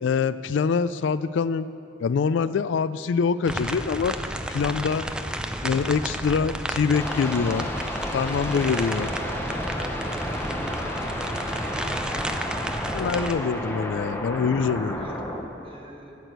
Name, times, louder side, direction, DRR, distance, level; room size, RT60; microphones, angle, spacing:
voice 1, 0.0-1.7 2.0-4.2 4.5-5.1 5.6-7.7 8.1-9.1 12.9-15.1, left 5 dB, 70° left, 15 dB, 0.3 m, -24 dB
sound 1, 3.4-13.3, right 1 dB, 5° right, 0.4 m, -32 dB
sound 2, 6.9-15.4, left 1 dB, 10° left, 0.9 m, -32 dB
voice 2, 8.7-11.2 11.5-13.1 15.0-15.2 15.6-16.2, right 1 dB, 30° right, 0 dB, 1.3 m, -43 dB
14.5 x 6.2 x 8.0 m, 2.8 s
head